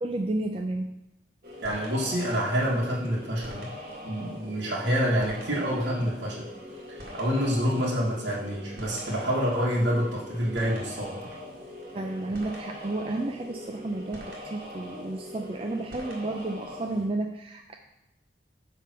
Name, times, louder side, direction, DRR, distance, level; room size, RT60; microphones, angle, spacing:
voice 1, 0.0-0.9 11.9-17.7, right 2 dB, 30° right, 3 dB, 0.4 m, -32 dB
sound 1, 1.4-17.0, left 1 dB, 50° right, 1.9 m, -42 dB
voice 2, 1.6-3.7 4.0-6.5 7.1-11.3, equal, 70° right, -5 dB, 1.6 m, -27 dB
9.0 x 3.6 x 6.0 m, 0.92 s
head